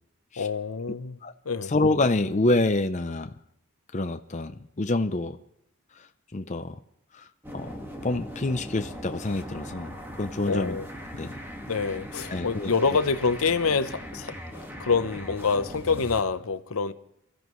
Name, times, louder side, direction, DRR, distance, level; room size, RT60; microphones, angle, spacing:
voice 1, 0.4-1.2 1.4-1.7 10.5-10.9 11.7-16.9, left 4 dB, 70° left, 0.8 m, -26 dB
voice 2, 1.7-3.3 3.9-5.4 6.0-6.1 6.3-6.8 7.1-7.3 7.5-7.7 8.0-9.9 10.2-10.8 11.1-11.4 12.3-12.7, left 2 dB, 30° left, 0.6 m, -27 dB
sound 1, 7.4-16.2, equal, 10° right, 1.8 m, -40 dB
27.5 x 14.0 x 3.1 m
head